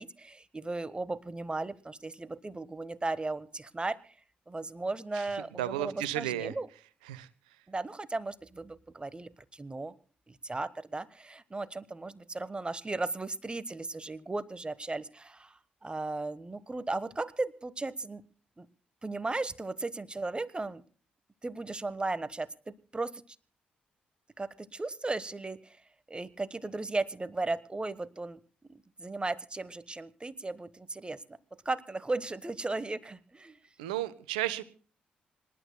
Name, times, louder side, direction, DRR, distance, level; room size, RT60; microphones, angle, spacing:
voice 1, 0.0-4.1 4.5-6.7 7.7-9.9 10.3-18.2 18.6-18.7 19.0-20.8 21.4-23.2 24.4-25.8 26.1-28.4 28.7-31.4 31.6-33.6, right 2 dB, 25° right, 15 dB, 1.2 m, -36 dB
voice 2, 5.1-6.5 7.1-7.3 33.8-34.6, right 14 dB, 80° right, 17 dB, 0.9 m, -33 dB
26.5 x 12.0 x 2.2 m, 0.41 s
hypercardioid pair, 40°, 4 cm